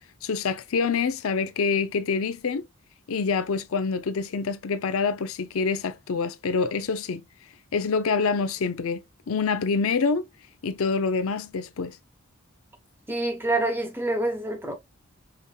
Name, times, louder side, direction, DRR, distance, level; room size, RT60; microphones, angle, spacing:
voice 1, 0.2-2.6 3.1-7.2 7.7-10.2 10.6-12.0, left 5 dB, 75° left, 0.5 m, -26 dB
voice 2, 13.1-14.7, right 2 dB, 10° right, 0.9 m, -26 dB
5.0 x 2.8 x 2.2 m
head